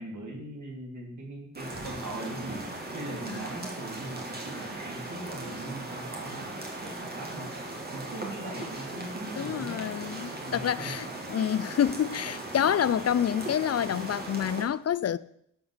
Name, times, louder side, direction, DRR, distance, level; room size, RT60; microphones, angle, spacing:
voice 1, 0.0-2.7 2.9-7.5 7.9-9.9 10.4-11.0, right 1 dB, 70° right, 3.5 m, -40 dB
sound 1, 1.5-14.6, right 2 dB, 30° right, 2.8 m, -38 dB
voice 2, 9.4-15.2, left 9 dB, 55° left, 0.5 m, -28 dB
11.5 x 5.7 x 6.6 m
cardioid pair, 55°, 30 cm